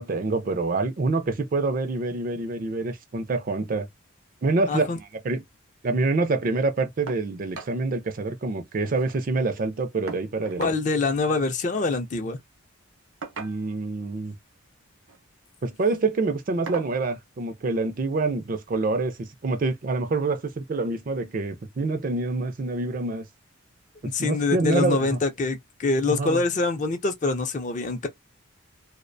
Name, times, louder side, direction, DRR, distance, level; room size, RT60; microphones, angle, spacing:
voice 1, 0.0-3.9 4.4-5.4 5.8-10.8 13.4-14.3 15.6-23.2 24.0-25.2 26.1-26.4, right 3 dB, 40° right, 0.4 m, -26 dB
voice 2, 4.7-5.0 10.6-12.4 24.0-28.1, left 3 dB, 35° left, 0.4 m, -25 dB
sound 1, 7.1-7.3 7.5-7.8 8.1-8.2 8.5-9.2 10.1-10.8 12.0-12.2 13.2-13.9 14.9-15.2 15.7-15.9 16.7-17.0 18.2-18.3 18.8-18.9, right 4 dB, 70° right, 0.7 m, -39 dB
2.4 x 2.1 x 2.5 m
head